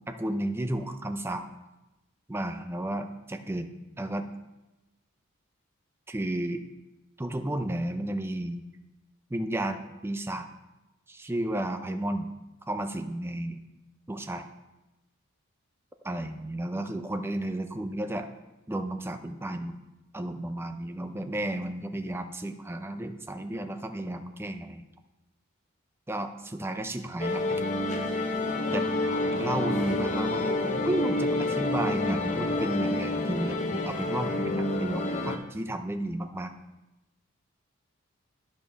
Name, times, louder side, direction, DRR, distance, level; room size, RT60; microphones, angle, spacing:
voice 1, 0.1-1.4 2.3-4.3 6.1-6.6 7.2-8.6 9.3-10.5 11.1-12.3 12.7-13.6 14.1-14.5 16.0-18.3 18.7-19.8 20.1-24.8 26.1-27.6 28.7-28.9 29.4-36.5, right 1 dB, 10° right, 7 dB, 0.5 m, -33 dB
sound 1, 27.2-35.4, left 2 dB, 35° left, 0.7 m, -28 dB
11.0 x 5.2 x 4.1 m, 1.0 s
head